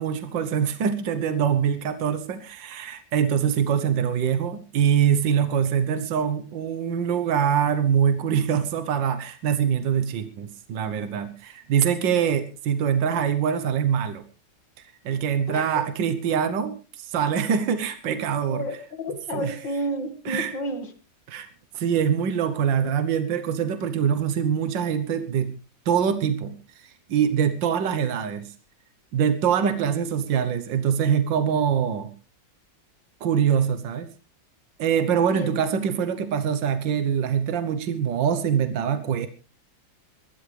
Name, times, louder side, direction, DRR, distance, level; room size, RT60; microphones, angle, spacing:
voice 1, 0.0-14.2 14.8-18.6 19.3-19.6 20.3-20.5 21.3-25.5 25.9-28.5 29.1-32.1 33.2-34.1 34.8-39.3, right 8 dB, 80° right, 10 dB, 1.8 m, -24 dB
voice 2, 15.5-15.9 18.5-20.9 35.3-35.6, equal, 75° left, 8 dB, 2.8 m, -31 dB
23.0 x 13.0 x 3.4 m, 0.33 s
omnidirectional pair, 2.0 m